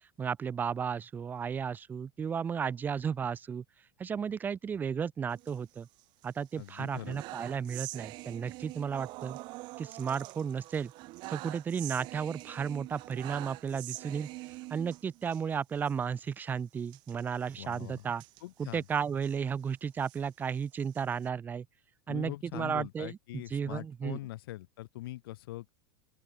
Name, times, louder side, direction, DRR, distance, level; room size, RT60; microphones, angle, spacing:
voice 1, 0.2-3.6 4.0-5.9 6.2-9.4 9.8-10.9 11.3-14.3 14.7-18.2 18.6-21.7 22.1-24.2, right 7 dB, 15° right, 1.3 m, -34 dB
sound 1, 5.3-6.3 6.6-15.4 15.8-15.9 16.2-16.3 16.9-19.4 19.9-21.3, right 21 dB, 35° right, 3.1 m, -45 dB
voice 2, 6.6-7.2 17.6-18.1 18.4-18.8 22.1-25.7, left 16 dB, 65° left, 7.2 m, -42 dB
open air
supercardioid pair, 170°, 13 cm